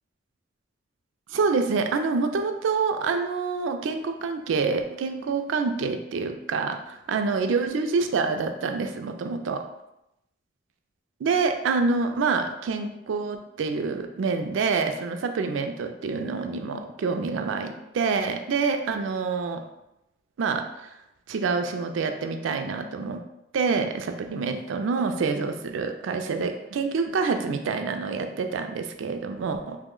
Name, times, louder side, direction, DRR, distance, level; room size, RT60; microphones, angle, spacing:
voice 1, 1.3-9.6 11.2-19.6 20.4-20.9 21.3-23.2 23.5-29.8, right 4 dB, 80° right, 6 dB, 0.3 m, -27 dB
3.0 x 2.1 x 3.6 m, 0.88 s
head